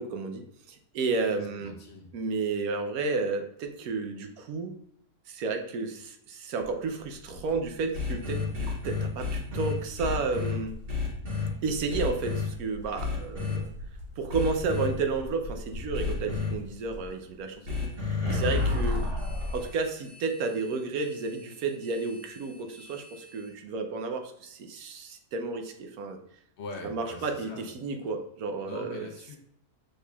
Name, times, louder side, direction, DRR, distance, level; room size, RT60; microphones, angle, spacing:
voice 1, 0.0-1.7 2.1-4.7 5.3-10.7 11.6-13.7 14.2-17.6 17.8-19.0 19.5-26.2 26.8-29.1, right 4 dB, 75° right, 5 dB, 1.1 m, -32 dB
voice 2, 1.2-2.1 26.6-27.7 28.6-29.4, left 3 dB, 55° left, 1 dB, 0.8 m, -42 dB
sound 1, 6.6-19.3, left 1 dB, 60° right, 1.9 m, -44 dB
sound 2, 7.9-10.5 10.9-11.5 11.9-12.4 13.0-13.6 14.3-14.9 15.9-16.5 17.7-23.5, left 4 dB, 40° right, 1.2 m, -32 dB
6.4 x 3.4 x 2.3 m, 0.73 s
omnidirectional pair, 1.6 m